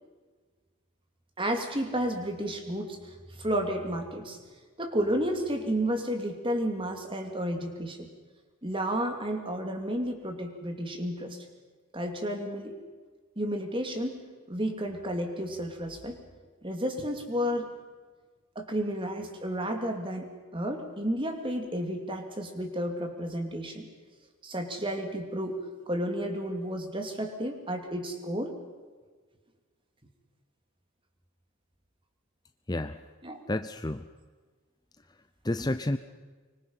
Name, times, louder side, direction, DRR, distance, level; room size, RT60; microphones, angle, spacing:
voice 1, 1.4-4.4 4.8-8.1 8.6-11.4 11.9-12.8 13.4-14.2 14.5-16.2 16.6-17.7 18.5-23.9 24.4-25.6 25.9-28.5 33.2-33.4, equal, 25° right, 4 dB, 2.9 m, -32 dB
voice 2, 33.5-34.0 35.4-36.0, left 1 dB, 20° left, 10 dB, 0.6 m, -30 dB
25.0 x 25.0 x 5.7 m, 1.4 s
head